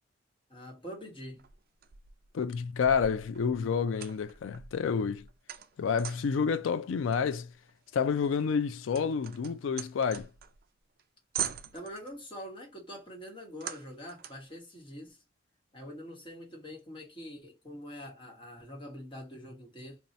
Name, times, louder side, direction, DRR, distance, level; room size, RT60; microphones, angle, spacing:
voice 1, 0.5-1.4 11.7-15.2 15.7-20.0, equal, 25° left, 1.2 m, -44 dB
sound 1, 1.4-2.3 2.8-6.4 7.1-10.7 11.0-11.1 11.3-12.2 13.6-14.5, right 9 dB, 50° right, 0.4 m, -42 dB
voice 2, 2.3-5.3 5.8-7.5 7.9-10.3, left 6 dB, 80° left, 0.4 m, -29 dB
2.7 x 2.3 x 4.1 m
head